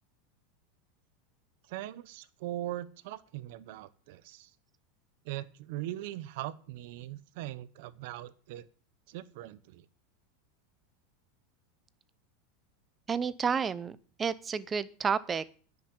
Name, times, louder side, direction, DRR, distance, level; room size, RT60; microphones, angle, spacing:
voice 1, 1.7-4.5 5.2-8.7 9.1-9.9, right 14 dB, 65° right, 16 dB, 1.0 m, -40 dB
voice 2, 13.1-15.4, right 6 dB, 20° right, 17 dB, 0.8 m, -31 dB
10.0 x 6.6 x 8.8 m, 0.41 s
supercardioid pair, 130°, 0 cm